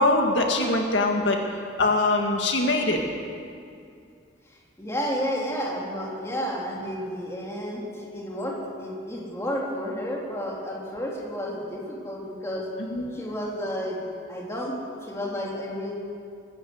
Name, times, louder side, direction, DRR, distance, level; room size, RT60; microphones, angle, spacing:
voice 1, 0.0-1.4 1.8-3.0 12.9-13.1, left 2 dB, 65° left, 2 dB, 2.0 m, -22 dB
voice 2, 4.8-12.7 13.1-14.0 14.3-15.9, equal, 15° left, -4 dB, 3.5 m, -31 dB
21.0 x 16.0 x 8.0 m, 2.4 s
head